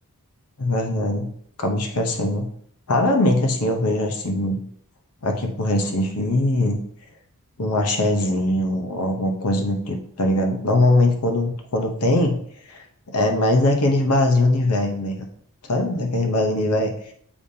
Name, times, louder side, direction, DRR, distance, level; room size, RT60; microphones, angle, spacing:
voice 1, 0.6-1.3 1.6-2.5 2.9-4.6 5.2-6.8 7.6-12.4 12.7-15.2 15.6-16.9, left 1 dB, 90° left, 3 dB, 0.8 m, -21 dB
7.1 x 5.1 x 2.7 m, 0.63 s
head